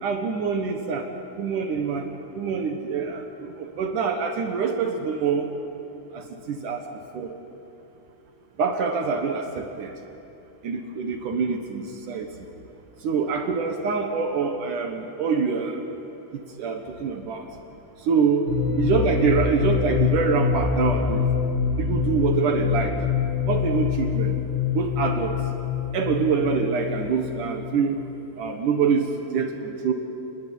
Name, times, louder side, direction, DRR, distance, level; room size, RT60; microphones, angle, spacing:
voice 1, 0.0-2.1 2.3-5.5 6.1-6.9 7.1-7.3 8.6-9.9 10.6-12.5 13.0-15.8 16.3-17.5 18.0-21.3 21.8-23.0 23.5-24.3 24.7-25.4 25.9-28.0 28.4-29.9, right 5 dB, 70° right, 4 dB, 2.0 m, -25 dB
sound 1, 18.5-28.1, left 6 dB, 20° left, 6.8 m, -25 dB
29.5 x 21.0 x 9.4 m, 2.9 s
omnidirectional pair, 5.9 m